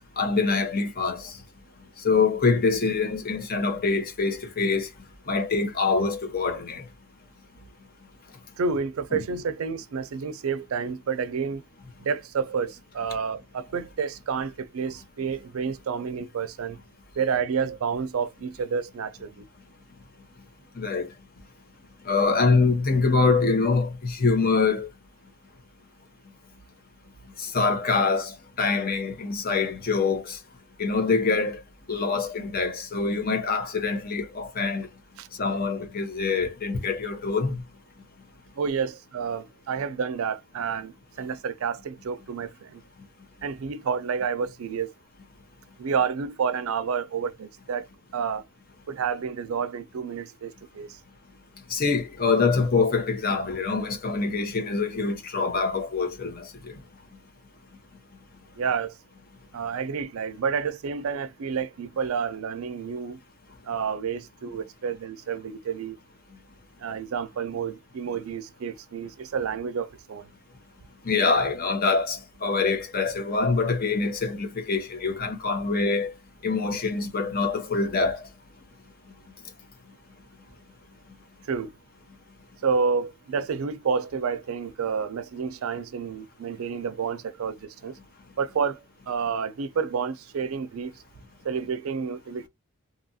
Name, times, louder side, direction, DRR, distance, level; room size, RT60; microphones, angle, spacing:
voice 1, 0.2-1.3 2.0-4.9 5.3-6.8 9.1-9.2 20.8-21.1 22.1-24.9 27.4-30.4 30.8-31.6 31.9-34.9 35.4-37.6 51.7-56.7 71.0-76.1 76.4-78.2, left 4 dB, 45° left, 0.6 m, -25 dB
voice 2, 8.6-11.6 12.0-16.8 17.2-19.5 35.2-35.3 38.6-42.8 43.4-44.9 45.8-47.9 48.1-48.5 48.9-51.0 58.6-58.9 59.5-63.2 63.6-66.0 66.8-70.3 81.5-81.7 82.6-88.0 88.4-90.9 91.4-92.5, right 6 dB, 90° right, 0.4 m, -29 dB
2.8 x 2.3 x 2.7 m
head